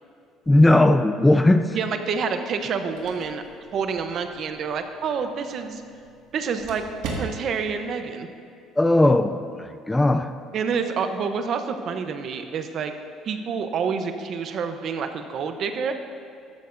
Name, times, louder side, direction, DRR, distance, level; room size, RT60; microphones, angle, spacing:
voice 1, 0.5-1.8 8.8-10.3, left 1 dB, 10° left, 9 dB, 0.3 m, -18 dB
voice 2, 1.7-3.4 3.7-5.8 6.3-6.8 7.2-8.3 10.5-12.9 13.2-15.9, right 6 dB, 40° right, 7 dB, 0.8 m, -28 dB
sound 1, 2.5-7.8, right 3 dB, 75° right, 1.8 m, -39 dB
14.5 x 12.5 x 2.6 m, 2.4 s
cardioid pair, 165°, 0 cm